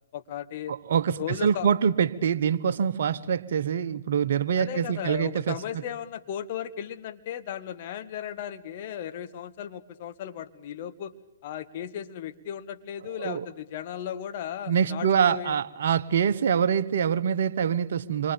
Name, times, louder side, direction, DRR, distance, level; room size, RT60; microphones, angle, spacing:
voice 1, 0.1-0.8 1.2-1.7 4.5-11.1 11.4-15.6, left 10 dB, 45° left, 9 dB, 2.0 m, -36 dB
voice 2, 0.7-5.6 13.2-13.4 14.7-18.3, right 7 dB, 60° right, 13 dB, 1.2 m, -25 dB
27.5 x 24.5 x 8.8 m, 0.86 s
figure-of-eight pair, 125°, 0 cm